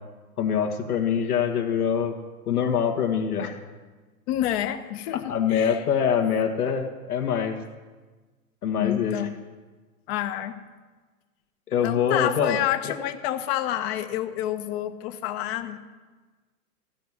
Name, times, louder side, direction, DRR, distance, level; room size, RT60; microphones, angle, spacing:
voice 1, 0.4-2.1 2.5-3.6 5.3-7.6 8.6-9.2 11.7-12.6 12.8-12.9, left 7 dB, 75° left, 4 dB, 1.8 m, -24 dB
voice 2, 4.3-5.8 8.8-9.3 10.1-10.6 11.8-15.8, left 12 dB, 45° left, 9 dB, 1.1 m, -28 dB
15.0 x 6.0 x 9.5 m, 1.3 s
hypercardioid pair, 110°, 45 cm